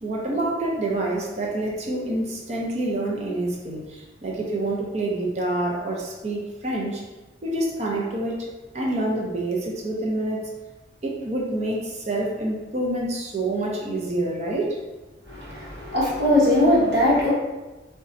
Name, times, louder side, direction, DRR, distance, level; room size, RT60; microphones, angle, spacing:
voice 1, 0.0-7.0 7.4-8.5 8.7-10.5 11.0-14.8, right 2 dB, 40° right, -2 dB, 0.6 m, -27 dB
voice 2, 15.3-17.3, left 1 dB, 70° right, -6 dB, 1.1 m, -20 dB
3.9 x 2.2 x 2.5 m, 1.2 s
head